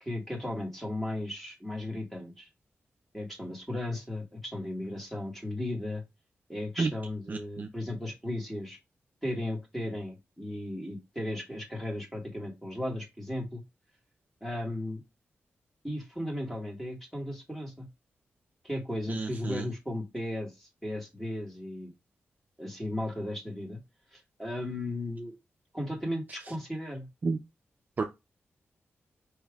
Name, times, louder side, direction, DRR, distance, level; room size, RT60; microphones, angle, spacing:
voice 1, 0.0-2.5 3.1-6.0 6.5-8.8 9.2-13.6 14.4-15.0 15.8-17.9 18.6-21.9 22.6-23.8 24.1-25.3 25.7-27.1, left 1 dB, 5° left, 1.8 m, -36 dB
voice 2, 7.3-7.7 19.1-19.7 27.2-27.4 28.0-28.1, right 4 dB, 40° right, 0.6 m, -30 dB
4.8 x 3.1 x 3.6 m
wide cardioid pair, 125°, 4 cm